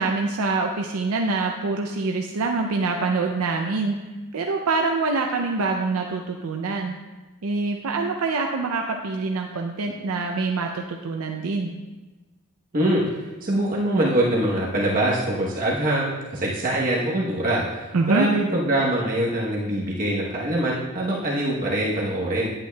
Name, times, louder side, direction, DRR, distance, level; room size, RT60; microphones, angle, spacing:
voice 1, 0.0-4.0 4.3-7.0 7.4-11.7 17.9-18.3, right 3 dB, 75° right, 3 dB, 0.5 m, -25 dB
voice 2, 12.7-22.5, right 1 dB, 40° right, -5 dB, 1.1 m, -24 dB
10.0 x 8.8 x 2.3 m, 1.2 s
head